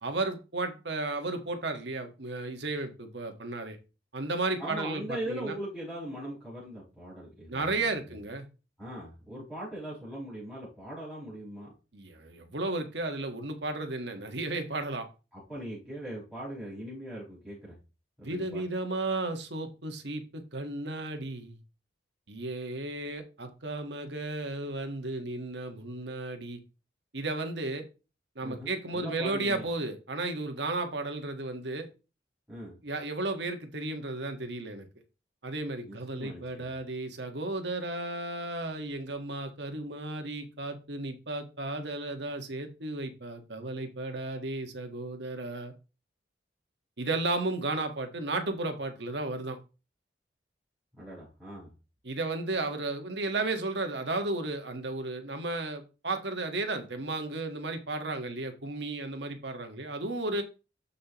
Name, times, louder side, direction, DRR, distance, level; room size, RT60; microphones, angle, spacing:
voice 1, 0.0-3.8 4.1-5.5 7.5-8.5 11.9-15.1 18.2-21.6 22.3-26.6 27.1-27.8 28.3-31.9 32.8-34.9 35.4-45.7 47.0-49.6 52.0-60.4, right 2 dB, 65° right, 5 dB, 1.6 m, -34 dB
voice 2, 4.6-8.2 8.8-11.7 15.3-17.7 18.2-18.6 28.4-29.7 32.5-32.8 35.9-36.7 50.9-51.7, right 1 dB, 5° right, -10 dB, 5.7 m, -40 dB
12.5 x 5.7 x 3.0 m, 0.31 s
head